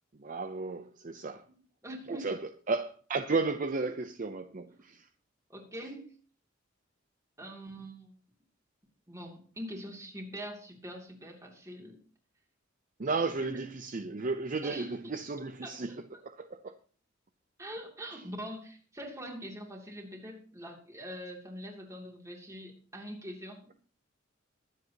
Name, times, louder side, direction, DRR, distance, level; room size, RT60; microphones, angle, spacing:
voice 1, 0.2-1.4 2.1-5.1 13.0-15.9 16.2-16.3 16.6-16.7, right 3 dB, 40° right, 0.6 m, -33 dB
voice 2, 1.5-2.3 5.5-6.2 7.4-8.2 9.1-12.0 13.4-13.7 14.6-14.9 15.4-16.0 17.6-23.7, equal, 15° right, 2.7 m, -43 dB
22.0 x 7.9 x 2.9 m
head